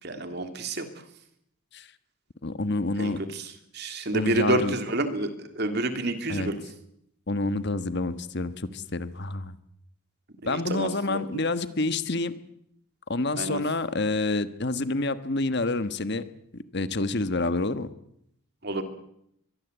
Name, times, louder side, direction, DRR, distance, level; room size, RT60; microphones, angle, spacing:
voice 1, 0.0-0.9 3.0-3.5 3.7-6.6 10.4-11.2 13.4-13.6 18.6-18.8, right 2 dB, 50° right, 7 dB, 3.0 m, -29 dB
voice 2, 2.4-3.2 4.1-4.7 6.3-6.5 7.3-9.5 10.4-12.3 13.1-16.2 16.7-17.9, left 2 dB, 50° left, 12 dB, 1.3 m, -28 dB
23.5 x 21.0 x 8.1 m, 0.75 s
head